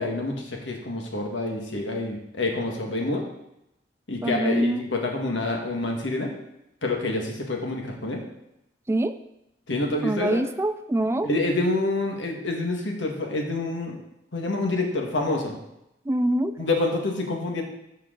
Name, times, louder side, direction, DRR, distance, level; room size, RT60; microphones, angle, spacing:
voice 1, 0.0-3.2 4.1-6.3 6.8-8.2 9.7-10.4 11.2-14.0 14.3-15.5 16.6-17.6, left 2 dB, 85° left, 1 dB, 1.6 m, -27 dB
voice 2, 4.2-4.8 8.9-9.2 10.0-11.3 16.1-16.5, right 1 dB, 15° right, 11 dB, 0.3 m, -24 dB
13.5 x 4.7 x 3.8 m, 0.84 s
head